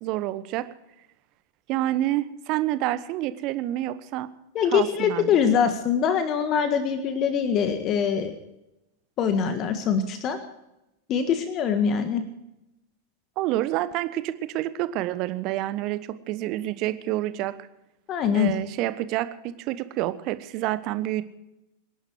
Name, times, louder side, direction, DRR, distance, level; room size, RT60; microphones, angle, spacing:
voice 1, 0.0-0.6 1.7-4.3 4.7-5.4 13.4-17.5 18.3-21.2, right 15 dB, 40° right, 13 dB, 1.2 m, -28 dB
voice 2, 4.5-8.4 9.2-10.4 11.1-12.2 18.1-18.5, left 7 dB, 35° left, 8 dB, 1.6 m, -23 dB
26.0 x 11.0 x 4.8 m, 0.90 s
figure-of-eight pair, 90°, 0 cm